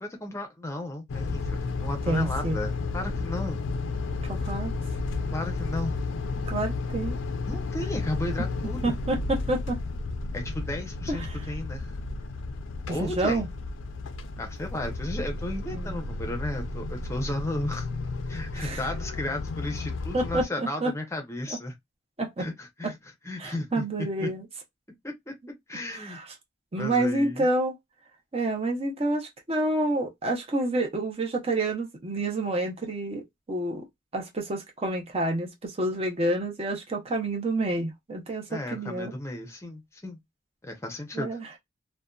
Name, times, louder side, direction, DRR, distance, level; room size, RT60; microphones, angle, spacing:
voice 1, 0.0-3.6 5.3-6.0 7.4-8.9 10.3-12.0 12.9-13.5 14.4-17.9 18.3-21.7 22.4-23.0 23.2-24.3 25.0-25.3 25.7-26.2 26.8-27.5 38.5-40.2 40.6-41.4, left 1 dB, 15° left, 0.6 m, -34 dB
sound 1, 1.1-20.4, left 3 dB, 90° left, 0.4 m, -32 dB
voice 2, 2.1-2.6 4.3-4.7 6.5-7.1 8.8-9.8 11.1-11.3 12.9-13.5 15.7-15.9 18.6-18.8 20.1-20.9 21.5-21.6 22.2-22.5 22.8-22.9 23.4-24.4 25.9-26.2 26.7-27.7 28.3-33.9 34.1-39.1 41.1-41.5, right 2 dB, 30° right, 0.6 m, -28 dB
2.6 x 2.1 x 2.2 m
head